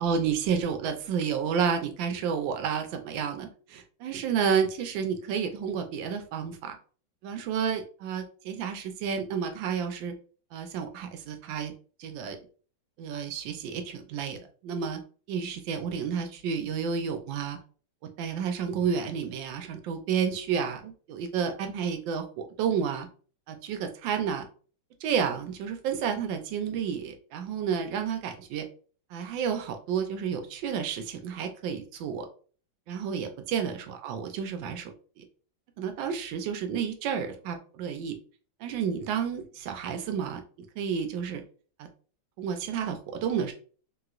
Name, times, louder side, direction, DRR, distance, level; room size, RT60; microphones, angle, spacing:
voice 1, 0.0-6.8 7.2-10.1 10.5-11.7 12.0-12.4 13.0-15.0 15.3-17.6 18.2-23.1 23.5-24.5 25.0-28.6 29.1-32.3 32.9-35.2 35.8-38.2 38.6-40.4 40.8-41.4 42.4-43.5, right 7 dB, 85° right, 6 dB, 1.3 m, -31 dB
3.0 x 2.9 x 2.3 m, 0.41 s
omnidirectional pair, 2.0 m